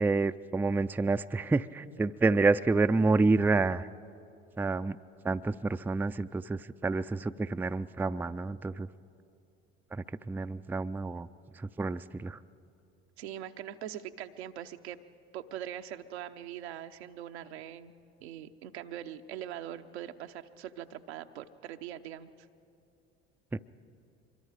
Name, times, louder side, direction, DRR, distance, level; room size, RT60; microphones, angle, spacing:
voice 1, 0.0-3.9 4.6-5.0 5.2-8.9 9.9-11.3 11.6-12.4 23.5-23.6, right 3 dB, 5° right, 11 dB, 0.4 m, -28 dB
voice 2, 13.2-15.0 15.3-18.0 18.2-22.3, right 11 dB, 80° right, 7 dB, 0.8 m, -42 dB
24.5 x 22.5 x 4.9 m, 2.5 s
hypercardioid pair, 65°, 32 cm